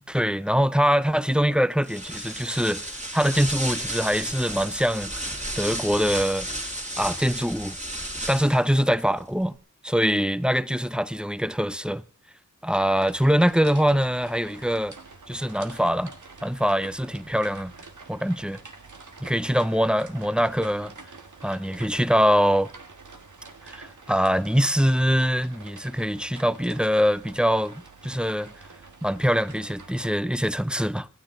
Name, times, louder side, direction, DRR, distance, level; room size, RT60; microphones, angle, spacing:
voice 1, 0.1-5.1 5.6-6.5 7.0-7.8 8.3-9.5 9.8-12.0 12.6-14.9 15.3-16.1 16.4-17.7 18.1-18.6 19.2-20.9 21.4-22.7 23.7-28.5 29.0-31.1, equal, 5° right, 0.6 m, -23 dB
sound 1, 1.8-8.7, right 1 dB, 25° right, 2.8 m, -33 dB
sound 2, 12.8-30.1, right 4 dB, 75° right, 1.7 m, -46 dB
25.5 x 9.7 x 3.8 m
wide cardioid pair, 50°, 31 cm